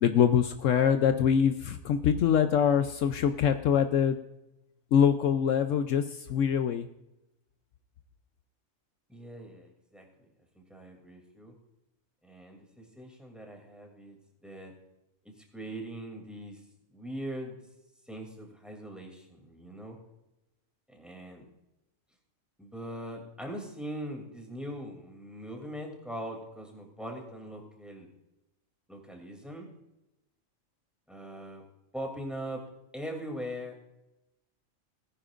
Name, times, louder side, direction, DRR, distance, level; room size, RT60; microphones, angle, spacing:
voice 1, 0.0-4.2 4.9-6.0 6.3-6.9, left 8 dB, 70° left, 9 dB, 0.9 m, -24 dB
voice 2, 9.1-11.5 12.2-14.2 14.4-14.7 15.2-16.6 16.9-17.6 18.1-20.0 20.9-21.5 22.6-28.1 28.9-29.7 31.1-31.6 31.9-32.6 32.9-33.8, equal, ahead, 1 dB, 2.6 m, -41 dB
18.0 x 10.0 x 2.5 m, 0.91 s
omnidirectional pair, 1.4 m